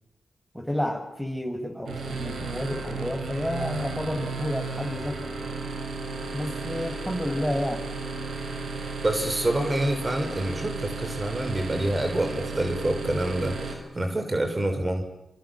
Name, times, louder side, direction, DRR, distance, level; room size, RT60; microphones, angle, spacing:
voice 1, 0.5-5.2 6.3-7.8, left 1 dB, ahead, 5 dB, 6.6 m, -30 dB
sound 1, 1.8-13.7, right 3 dB, 75° right, 6.8 m, -34 dB
voice 2, 9.0-15.0, right 1 dB, 30° right, 5 dB, 6.4 m, -27 dB
30.0 x 27.0 x 7.4 m, 0.87 s
supercardioid pair, 45°, 0 cm